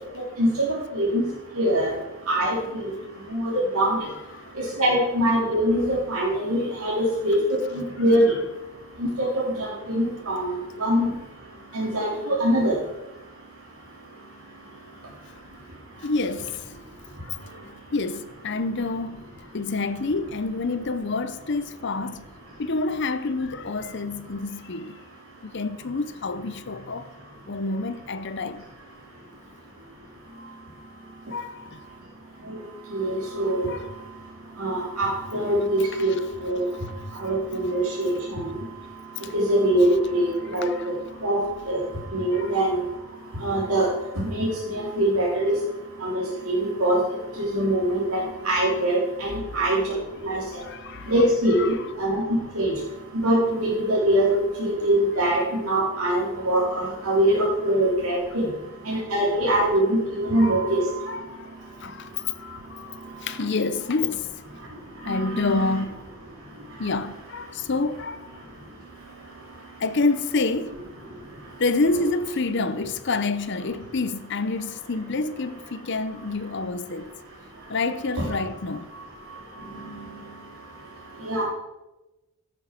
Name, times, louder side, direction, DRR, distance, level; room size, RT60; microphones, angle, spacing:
voice 1, 0.4-0.7 0.9-1.2 1.5-1.9 2.3-2.8 3.3-4.0 4.5-7.4 7.7-8.3 9.0-9.3 9.6-11.1 11.7-12.7 32.5-32.6 32.9-33.7 34.6-36.1 36.4-36.6 37.2-38.4 39.3-40.7 41.2-41.4 41.6-41.8 42.1-42.8 43.4-43.9 44.2-45.5 46.0-47.0 47.4-49.9 50.2-50.4 51.1-52.2 52.5-52.7 53.2-58.5 58.8-60.8 65.1-65.7 79.6-80.1 81.2-81.4, right 1 dB, 85° right, 3.2 m, -23 dB
voice 2, 4.0-4.9 7.7-8.5 16.0-16.7 17.2-17.4 17.9-22.3 22.6-25.0 25.4-27.1 27.5-28.7 31.3-31.9 33.6-34.1 35.8-36.3 36.8-36.9 39.2-39.4 39.8-40.0 40.5-41.0 42.3-42.7 49.4-49.5 50.5-52.1 55.1-55.3 57.3-57.4 58.3-58.4 59.3-59.4 60.4-64.3 65.0-66.0 66.8-68.4 69.8-70.7 71.6-77.1 77.7-78.9, left 3 dB, 55° left, 0.6 m, -29 dB
14.5 x 7.1 x 5.9 m
head